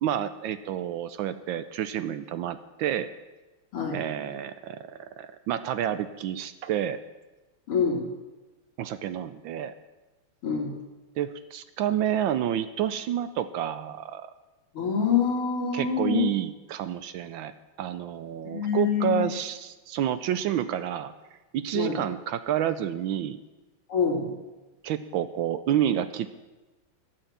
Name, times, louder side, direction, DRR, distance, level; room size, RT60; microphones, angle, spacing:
voice 1, 0.0-3.1 3.9-7.0 8.8-9.7 11.2-14.3 15.7-17.5 17.8-21.1 21.5-23.4 24.8-26.3, right 10 dB, 75° right, 12 dB, 1.2 m, -29 dB
voice 2, 7.7-8.0 10.4-10.7 14.7-16.3 18.4-19.2 21.7-22.0 23.9-24.3, left 6 dB, 90° left, 0 dB, 3.3 m, -26 dB
11.5 x 9.1 x 7.3 m, 1.1 s
omnidirectional pair, 2.4 m